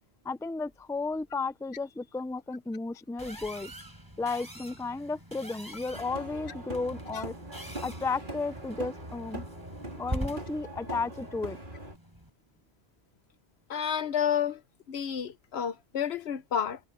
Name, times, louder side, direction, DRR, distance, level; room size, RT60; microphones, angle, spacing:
voice 1, 0.2-3.7 4.2-7.3 7.8-9.4 10.0-11.6, left 3 dB, 5° left, 0.3 m, -33 dB
sound 1, 3.2-12.3, equal, 20° right, 5.0 m, -43 dB
sound 2, 5.9-12.0, right 1 dB, 50° right, 4.2 m, -41 dB
voice 2, 13.7-14.6 14.9-16.8, left 8 dB, 75° left, 1.1 m, -30 dB
omnidirectional pair, 1.1 m